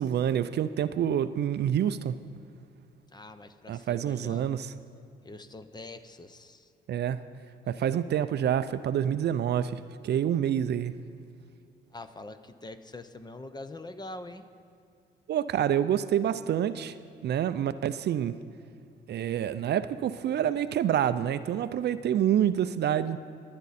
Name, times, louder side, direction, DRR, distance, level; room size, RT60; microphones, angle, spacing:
voice 1, 0.0-2.1 3.7-4.7 6.9-7.2 7.7-10.9 15.3-16.9 17.2-18.4 19.1-23.2, right 10 dB, 55° right, 13 dB, 0.5 m, -27 dB
voice 2, 3.1-4.5 5.2-6.7 11.9-14.4, left 2 dB, 20° left, 10 dB, 0.7 m, -44 dB
23.0 x 9.6 x 4.2 m, 2.4 s
cardioid pair, 90°, 20 cm